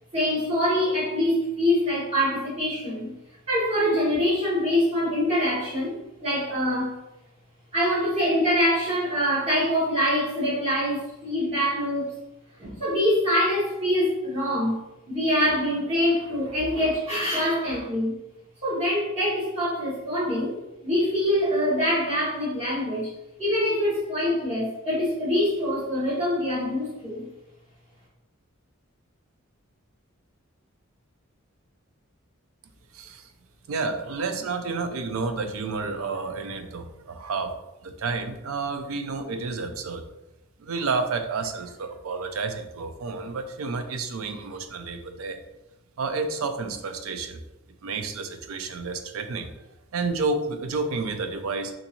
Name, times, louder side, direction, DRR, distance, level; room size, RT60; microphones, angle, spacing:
voice 1, 0.1-3.1 3.5-5.9 6.2-6.9 7.7-12.2 12.6-14.8 15.1-18.1 18.6-20.5 20.8-23.1 23.4-27.3, equal, 30° right, -10 dB, 1.4 m, -24 dB
voice 2, 32.9-33.3 33.7-37.5 37.8-40.0 40.6-45.4 46.0-47.4 47.8-49.5 49.9-51.7, right 4 dB, 75° right, 7 dB, 0.4 m, -30 dB
3.7 x 2.5 x 2.8 m, 0.95 s
head